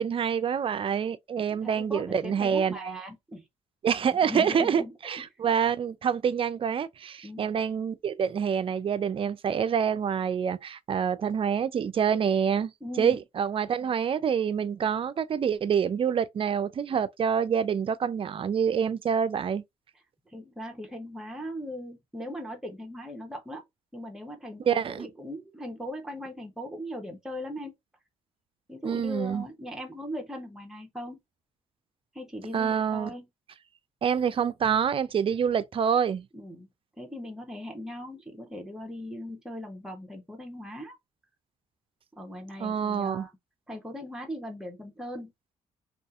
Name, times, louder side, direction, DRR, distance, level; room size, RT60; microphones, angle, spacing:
voice 1, 0.0-2.8 3.8-12.7 13.0-19.6 24.7-25.1 28.8-29.4 32.5-33.1 34.0-36.3 42.6-43.3, right 7 dB, 40° right, 0.4 m, -26 dB
voice 2, 1.4-3.5 4.0-5.2 7.2-7.5 12.8-13.2 20.3-23.6 23.9-27.7 28.7-31.2 32.1-33.3 36.3-36.7 37.0-41.0 42.1-43.3 43.7-45.3, equal, 5° right, 0.8 m, -39 dB
2.6 x 2.4 x 2.3 m
supercardioid pair, 65°, 14 cm